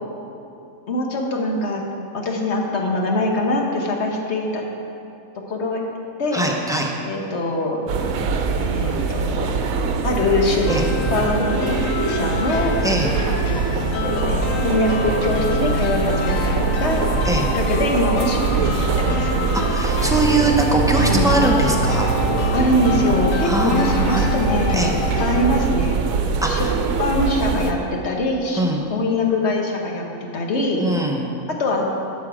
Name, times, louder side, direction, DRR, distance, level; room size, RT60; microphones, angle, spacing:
voice 1, 0.9-1.8 2.1-4.6 5.5-5.8 6.2-6.4 7.1-7.8 8.6-9.5 10.0-10.7 11.1-12.8 14.3-17.0 17.5-19.3 21.0-21.3 22.5-24.9 25.2-26.0 26.5-26.7 27.0-28.6 28.9-30.0 30.3-30.8 31.6-31.9, left 2 dB, 55° left, 1 dB, 1.3 m, -23 dB
voice 2, 6.3-6.9 10.7-10.8 12.8-13.1 17.2-17.5 19.5-22.1 22.4-22.6 23.4-24.3 24.7-24.9 26.4-26.7 28.6-28.8 30.8-31.2, right 2 dB, 5° right, 0 dB, 0.6 m, -21 dB
sound 1, 7.9-27.7, right 5 dB, 80° right, 1.1 m, -23 dB
sound 2, 10.6-25.6, left 6 dB, 75° left, 1.0 m, -27 dB
12.5 x 5.9 x 5.0 m, 2.7 s
omnidirectional pair, 1.4 m